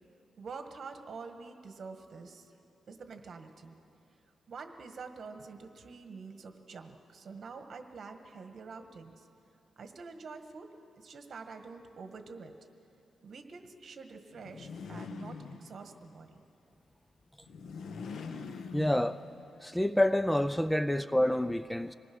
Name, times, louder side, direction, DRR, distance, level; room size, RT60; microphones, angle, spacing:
voice 1, 0.4-2.5 2.9-3.7 4.5-9.3 9.8-10.7 11.0-12.5 13.2-16.4, right 4 dB, 55° right, 1.7 m, -46 dB
sound 1, 14.3-16.1 17.4-19.6, left 5 dB, 75° left, 1.2 m, -43 dB
voice 2, 18.7-19.2 19.6-21.9, left 1 dB, 5° left, 0.4 m, -28 dB
26.0 x 19.5 x 6.2 m
cardioid pair, 105°, 0 cm